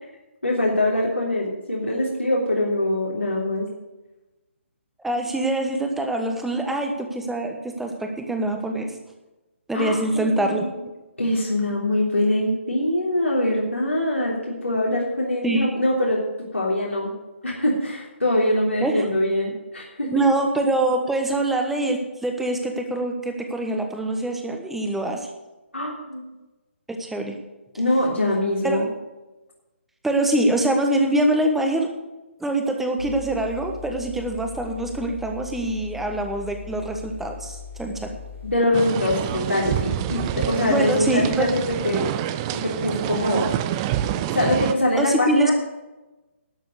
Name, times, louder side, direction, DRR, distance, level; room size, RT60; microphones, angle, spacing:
voice 1, 0.4-3.6 9.7-10.7 11.2-16.2 16.5-17.1 17.4-20.1 25.7-26.3 27.8-28.9 38.4-42.1 42.5-43.5 44.3-45.5, left 1 dB, 85° left, -4 dB, 3.2 m, -23 dB
voice 2, 5.0-8.9 9.7-10.6 15.4-15.7 18.8-19.1 20.1-25.2 27.0-27.4 28.6-28.8 30.0-31.9 32.4-38.1 40.7-41.5 45.0-45.5, right 1 dB, 5° right, 3 dB, 1.3 m, -24 dB
sound 1, 33.0-38.6, left 6 dB, 85° right, 2.7 m, -39 dB
sound 2, 38.7-44.7, right 12 dB, 20° right, 0.5 m, -27 dB
12.0 x 7.6 x 8.1 m, 1.1 s
figure-of-eight pair, 140°, 7 cm